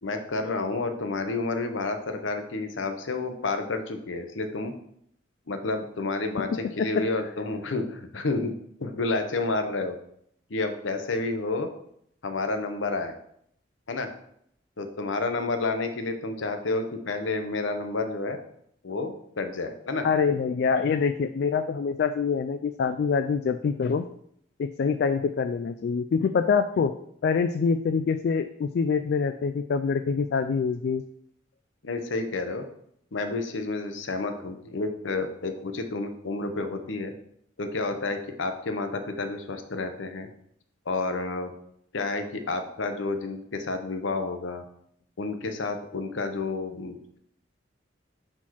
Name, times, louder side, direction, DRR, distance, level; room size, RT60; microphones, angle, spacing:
voice 1, 0.0-4.7 5.5-8.5 8.8-10.0 10.5-11.7 12.2-13.1 13.9-14.1 14.8-18.4 18.8-20.1 31.8-32.6 33.1-37.1 37.6-40.3 40.9-41.5 41.9-44.6 45.2-47.2, left 3 dB, 85° left, 7 dB, 0.8 m, -30 dB
voice 2, 6.4-7.1 20.0-24.0 24.6-26.9 27.2-31.0, left 5 dB, 60° left, 9 dB, 0.3 m, -25 dB
5.6 x 4.4 x 4.6 m, 0.71 s
head